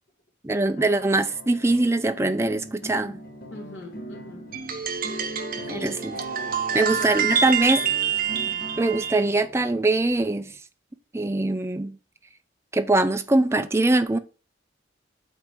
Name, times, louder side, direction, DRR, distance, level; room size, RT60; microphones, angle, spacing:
voice 1, 0.4-3.2 5.7-6.1 6.7-7.8 8.8-10.5 11.1-12.0 12.7-14.2, right 2 dB, 15° right, 0.5 m, -22 dB
sound 1, 0.8-10.6, right 1 dB, 50° left, 1.4 m, -41 dB
voice 2, 3.5-4.5 5.7-6.1 6.6-7.8, left 1 dB, 75° left, 1.9 m, -41 dB
sound 2, 4.5-9.3, right 7 dB, 45° right, 0.9 m, -27 dB
8.1 x 2.9 x 6.1 m
head